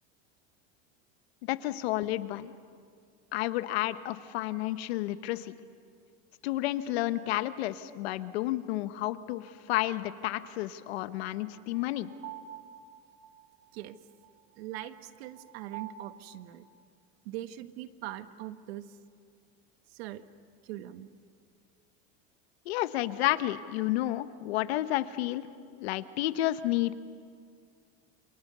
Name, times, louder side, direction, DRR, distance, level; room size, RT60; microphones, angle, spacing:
voice 1, 1.4-2.5 3.3-5.5 6.4-12.1 22.6-25.5 25.8-26.9, left 15 dB, 90° left, 12 dB, 1.2 m, -31 dB
sound 1, 9.3-9.4 11.2-16.0, right 12 dB, 60° right, 2.8 m, -48 dB
voice 2, 14.6-16.6 17.2-18.9 19.9-20.3 20.6-21.1, right 13 dB, 85° right, 11 dB, 1.4 m, -41 dB
28.0 x 27.5 x 6.9 m, 2.2 s
supercardioid pair, 120°, 31 cm